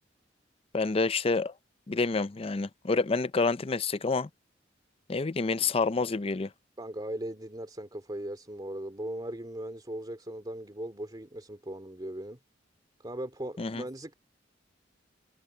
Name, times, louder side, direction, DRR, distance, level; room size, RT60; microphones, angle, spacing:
voice 1, 0.7-1.5 1.9-4.3 5.1-6.5 13.6-13.8, left 4 dB, 30° left, 0.5 m, -28 dB
voice 2, 6.8-12.4 13.0-14.1, right 1 dB, 25° right, 2.7 m, -38 dB
head